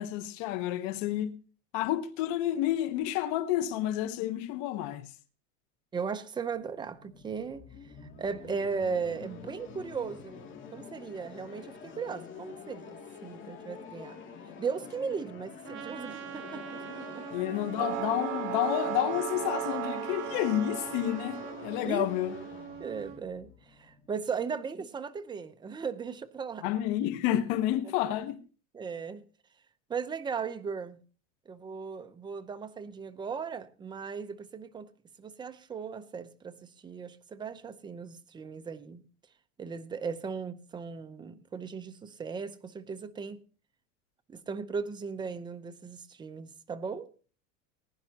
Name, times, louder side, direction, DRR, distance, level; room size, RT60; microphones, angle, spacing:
voice 1, 0.0-1.3 1.7-5.1 17.3-22.3 26.6-28.4, left 12 dB, 60° left, 1.1 m, -30 dB
voice 2, 5.9-14.2 14.6-17.2 21.8-22.1 22.3-22.4 22.8-26.7 28.7-29.2 29.9-31.0 31.5-34.9 35.2-39.0 39.6-43.4 44.3-47.1, right 5 dB, 10° right, 0.6 m, -37 dB
sound 1, 6.5-24.4, left 6 dB, 30° left, 2.5 m, -47 dB
Trumpet, 15.6-23.2, right 9 dB, 35° right, 1.2 m, -43 dB
sound 2, 17.8-21.8, right 12 dB, 65° right, 1.7 m, -36 dB
20.0 x 10.5 x 2.8 m
supercardioid pair, 150°, 38 cm